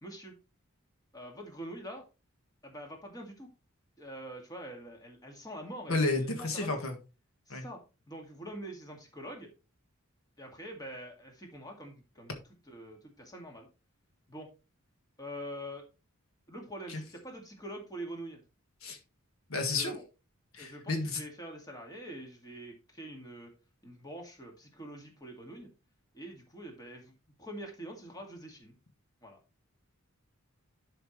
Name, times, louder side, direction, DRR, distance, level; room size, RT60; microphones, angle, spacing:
voice 1, 0.0-0.3 1.1-2.0 2.6-3.5 4.0-6.8 7.5-9.5 10.4-12.3 12.7-13.7 14.3-14.5 15.2-15.9 16.5-18.4 19.5-20.0 20.6-23.5 23.8-25.7 26.1-27.1 27.4-28.8 29.2-29.4, right 1 dB, 20° left, 2 dB, 2.1 m, -45 dB
voice 2, 5.9-7.0 7.5-7.6 16.9-17.0 18.8-19.0 19.5-20.0 20.5-21.2, left 3 dB, 70° left, 4 dB, 1.6 m, -31 dB
11.0 x 5.6 x 3.2 m, 0.30 s
head